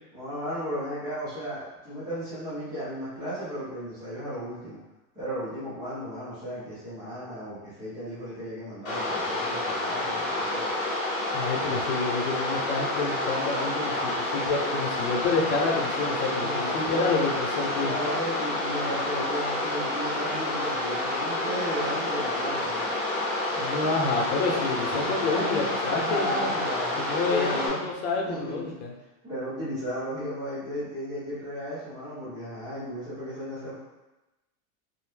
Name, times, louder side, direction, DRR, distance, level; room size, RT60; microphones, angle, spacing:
voice 1, 0.1-4.8 5.1-10.6 16.3-17.2 17.8-22.8 25.0-27.8 28.2-28.7 29.2-33.7, equal, 10° right, -12 dB, 0.4 m, -34 dB
sound 1, 8.9-27.7, left 1 dB, 30° left, 0.6 m, -29 dB
voice 2, 11.3-17.9 23.5-26.5 27.0-28.9, left 3 dB, 80° left, 0 dB, 0.8 m, -29 dB
2.6 x 2.0 x 3.2 m, 1.0 s
supercardioid pair, 180°, 44 cm